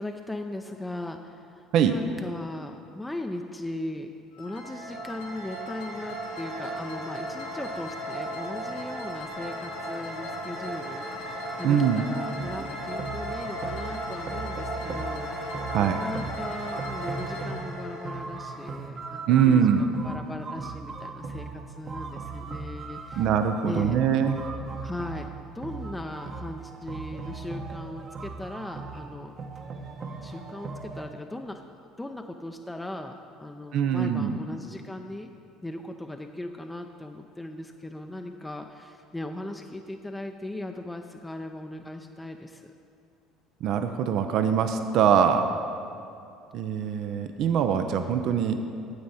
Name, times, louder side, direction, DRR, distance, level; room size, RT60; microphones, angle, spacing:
voice 1, 0.0-1.6 1.9-4.1 4.4-19.6 20.0-23.2 23.7-24.0 24.8-25.3 25.5-29.3 30.2-31.6 32.0-33.1 33.4-35.3 35.6-42.7, left 1 dB, 10° left, 4 dB, 0.5 m, -38 dB
sound 1, 4.3-19.2, equal, 85° left, 1.8 m, -36 dB
voice 2, 11.6-12.0 15.7-16.0 19.3-19.9 23.2-24.4 33.7-34.4 43.6-45.5 46.5-48.6, right 8 dB, 65° right, 7 dB, 0.5 m, -23 dB
sound 2, 12.3-31.0, right 4 dB, 40° right, 0.9 m, -38 dB
9.5 x 7.6 x 4.2 m, 2.5 s
supercardioid pair, 80°, 0 cm